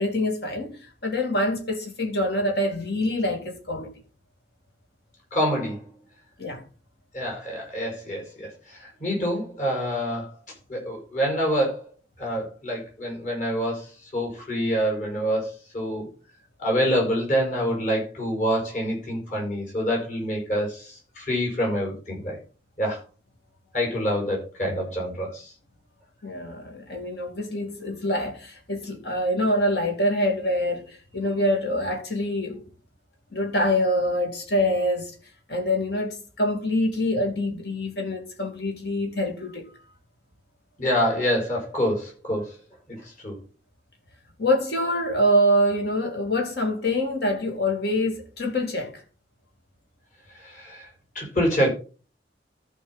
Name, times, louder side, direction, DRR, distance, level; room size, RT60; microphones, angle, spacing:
voice 1, 0.0-3.9 6.4-6.6 26.2-32.6 33.3-35.1 35.5-39.7 44.4-49.0, left 1 dB, 65° left, 2.6 m, -25 dB
voice 2, 5.3-5.9 7.1-10.3 10.7-11.9 12.2-16.1 16.6-22.4 22.8-23.0 23.7-25.5 40.8-42.6 42.9-43.4 50.3-50.9 51.2-51.7, equal, 45° left, 5.5 m, -26 dB
14.0 x 5.6 x 4.0 m
head